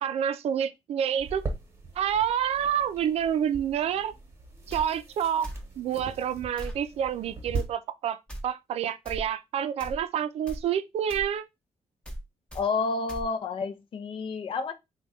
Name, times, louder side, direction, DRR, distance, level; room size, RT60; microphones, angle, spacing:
voice 1, 0.0-1.4 2.0-4.1 4.7-5.5 5.8-11.4, right 9 dB, 60° right, 0.4 m, -28 dB
sound 1, 1.2-7.6, right 3 dB, 25° right, 1.0 m, -40 dB
sound 2, 4.7-4.8 5.4-5.7 6.6-6.8 7.5-7.7 8.3-8.4 9.1-9.3 9.8-10.0 10.5-10.6 11.1-11.3 12.1-12.2 12.5-12.6 13.1-13.3, equal, 10° left, 0.7 m, -38 dB
voice 2, 12.5-14.7, left 4 dB, 50° left, 0.5 m, -30 dB
3.5 x 2.2 x 4.0 m
cardioid pair, 145°, 12 cm